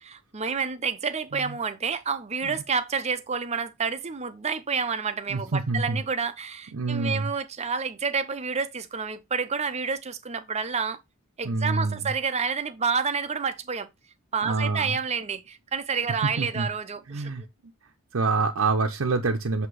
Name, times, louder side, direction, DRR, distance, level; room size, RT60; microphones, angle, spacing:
voice 1, 0.0-11.0 11.4-13.9 14.3-17.5, right 5 dB, 30° right, 0.7 m, -29 dB
voice 2, 5.3-6.0 6.7-7.3 11.4-12.0 14.4-14.9 16.4-16.7 17.1-17.4 18.1-19.7, right 3 dB, 80° right, 0.7 m, -27 dB
7.8 x 2.9 x 4.8 m
head